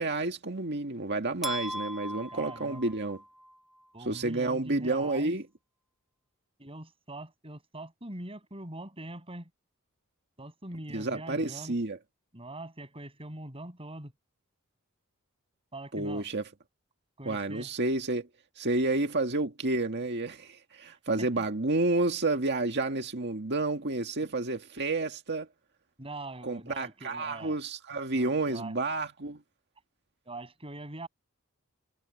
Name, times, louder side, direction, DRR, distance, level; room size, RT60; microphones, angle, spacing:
voice 1, 0.0-3.2 4.0-5.5 10.9-12.0 15.9-16.5 17.3-18.3 18.6-25.5 26.4-29.4, right 2 dB, 50° right, 2.0 m, -30 dB
sound 1, 1.4-3.6, equal, ahead, 7.9 m, -38 dB
voice 2, 2.3-2.9 3.9-5.4 6.6-9.5 10.4-11.7 12.3-14.1 15.7-16.3 17.2-17.7 21.2-21.4 26.0-27.6 28.1-28.7 30.2-31.1, right 2 dB, 25° right, 7.7 m, -43 dB
head